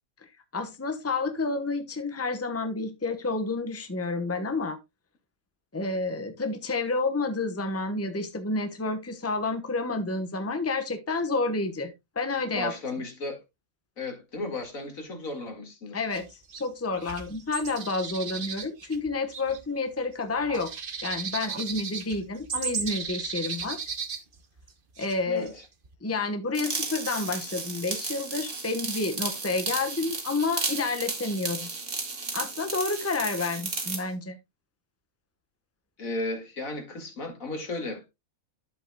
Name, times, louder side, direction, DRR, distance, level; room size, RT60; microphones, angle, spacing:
voice 1, 0.5-4.8 5.7-12.7 15.9-16.3 16.5-20.7 21.0-23.8 25.0-25.5 26.0-31.7 32.3-34.4, left 3 dB, 10° left, 1.1 m, -30 dB
voice 2, 12.5-13.4 14.0-16.0 25.3-25.6 36.0-38.1, left 2 dB, 75° left, 2.7 m, -35 dB
sound 1, 16.1-16.2 16.5-16.7 16.9-19.6 19.9-20.0 20.4-24.7 25.0-25.2 25.5-25.9, right 5 dB, 40° right, 1.1 m, -35 dB
sound 2, 26.5-34.0, right 4 dB, 60° right, 2.3 m, -34 dB
11.0 x 8.1 x 2.3 m
omnidirectional pair, 1.4 m